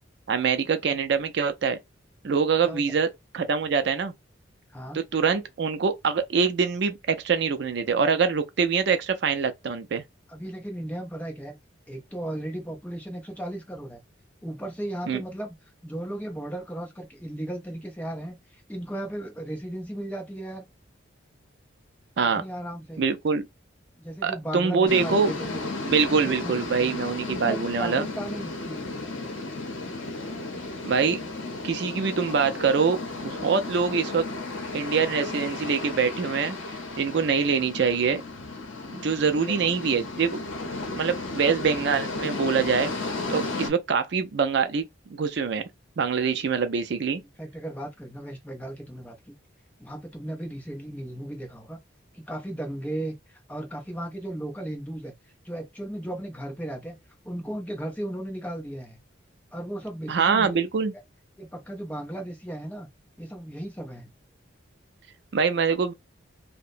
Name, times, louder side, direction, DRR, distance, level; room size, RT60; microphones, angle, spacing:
voice 1, 0.3-1.8 2.2-4.1 4.9-10.0 15.1-15.2 22.2-22.4 23.0-23.5 24.2-25.3 25.8-28.1 30.8-31.2 31.6-34.3 34.7-36.6 37.0-38.2 38.9-40.4 41.0-42.9 43.3-44.9 45.2-45.6 46.0-47.2 60.1-60.9 65.3-65.9, right 5 dB, 55° right, 0.4 m, -24 dB
voice 2, 4.7-5.0 10.3-11.5 11.9-14.0 14.4-15.5 15.8-20.7 22.3-23.0 24.0-25.7 26.1-27.0 27.3-29.4 39.3-39.8 47.4-49.4 49.8-51.8 52.1-55.1 55.4-57.0 57.2-59.0 59.5-60.5 61.4-62.9 63.2-64.1, right 1 dB, 10° left, 0.6 m, -36 dB
sound 1, 24.9-43.7, left 3 dB, 75° left, 0.7 m, -34 dB
2.8 x 2.1 x 2.4 m
head